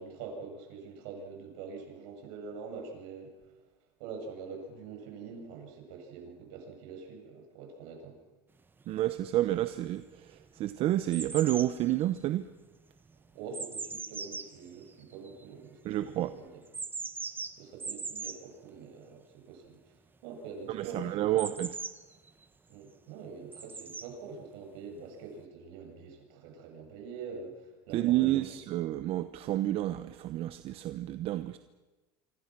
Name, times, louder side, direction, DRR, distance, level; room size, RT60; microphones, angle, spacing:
voice 1, 0.0-3.3 4.0-8.2 13.3-16.6 17.6-19.9 20.2-21.5 22.7-28.4, right 5 dB, 75° right, 3 dB, 7.4 m, -45 dB
sound 1, 8.8-8.9 9.5-10.1 10.4-15.7 16.6-18.4 21.4-22.4 23.5-24.1 25.0-25.1, right 4 dB, 15° right, 1.3 m, -40 dB
voice 2, 8.9-12.5 15.8-16.3 20.7-21.8 27.9-31.6, right 14 dB, 50° right, 11 dB, 1.1 m, -30 dB
27.5 x 25.5 x 6.2 m, 1.1 s
supercardioid pair, 120°, 12 cm